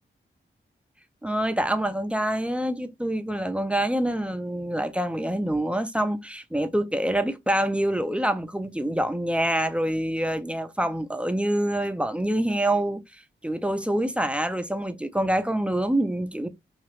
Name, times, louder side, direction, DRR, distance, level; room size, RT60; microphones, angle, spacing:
voice 1, 1.2-16.5, right 1 dB, 5° right, 0.5 m, -26 dB
3.0 x 2.4 x 3.0 m
cardioid pair, 60°, 20 cm